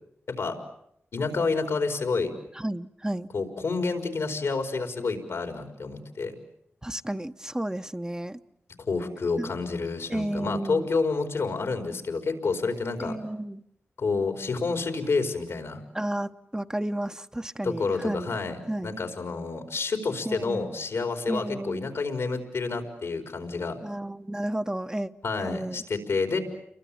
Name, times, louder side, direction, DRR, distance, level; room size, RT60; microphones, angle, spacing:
voice 1, 1.1-2.3 3.3-6.3 8.9-13.2 14.0-15.8 17.6-23.8 25.2-26.4, left 4 dB, 80° left, 4.7 m, -29 dB
voice 2, 2.5-3.3 6.8-8.4 9.4-9.5 10.1-10.9 13.0-13.6 15.9-18.3 18.7-18.9 20.2-20.8 21.3-21.9 23.8-25.1 25.4-25.8, right 1 dB, 15° right, 1.1 m, -32 dB
29.5 x 23.0 x 8.7 m
cardioid pair, 45°, 4 cm